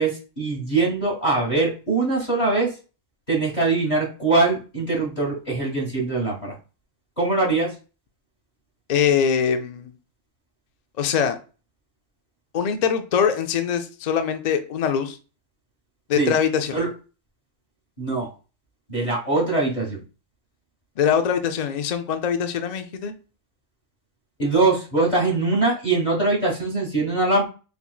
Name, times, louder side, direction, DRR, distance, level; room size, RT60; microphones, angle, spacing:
voice 1, 0.0-2.7 3.3-6.5 7.2-7.7 16.2-16.3 16.7-16.9 18.0-18.3 18.9-20.0 24.4-27.5, right 3 dB, 35° left, -2 dB, 1.5 m, -22 dB
voice 2, 8.9-9.9 11.0-11.4 12.5-15.2 16.1-16.8 21.0-23.1, left 7 dB, 60° left, 7 dB, 0.4 m, -23 dB
4.3 x 4.0 x 2.3 m, 0.34 s
omnidirectional pair, 1.3 m